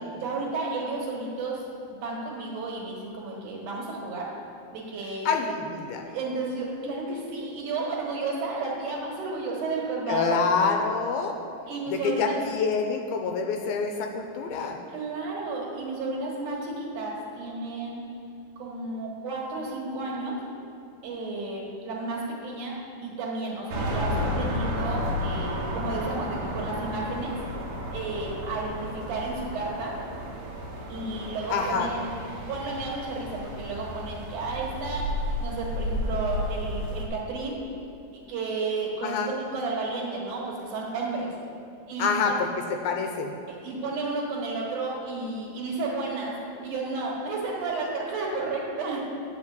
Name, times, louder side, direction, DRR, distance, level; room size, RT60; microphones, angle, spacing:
voice 1, 0.1-1.6 2.0-4.3 4.7-5.3 6.0-10.4 11.7-12.4 14.9-18.0 18.6-20.4 21.0-22.8 23.0-27.3 27.9-29.9 30.9-32.1 32.3-37.6 38.1-41.3 41.9-42.4 43.5-49.0, right 3 dB, 60° right, -5 dB, 2.7 m, -32 dB
voice 2, 5.3-6.0 10.1-11.4 11.9-14.8 31.5-31.9 39.0-39.3 42.0-42.5 42.8-43.4, left 5 dB, 85° left, 4 dB, 2.4 m, -26 dB
sound 1, 23.7-37.0, equal, 90° right, 1.1 m, -32 dB
9.2 x 5.1 x 8.0 m, 2.8 s
omnidirectional pair, 4.3 m